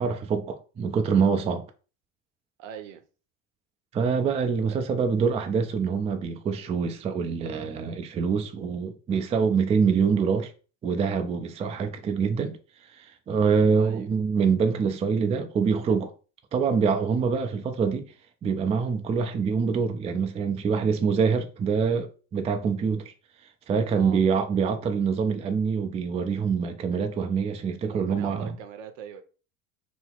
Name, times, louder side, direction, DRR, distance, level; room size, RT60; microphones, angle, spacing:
voice 1, 0.0-1.6 3.9-10.5 10.8-12.6 13.0-16.1 16.5-18.1 18.4-23.1 23.7-28.5, right 5 dB, 15° right, 0.3 m, -25 dB
voice 2, 2.6-3.0 13.8-14.1 23.9-24.2 27.9-29.2, right 8 dB, 75° right, 0.7 m, -41 dB
2.8 x 2.0 x 3.8 m
hypercardioid pair, 85°, 39 cm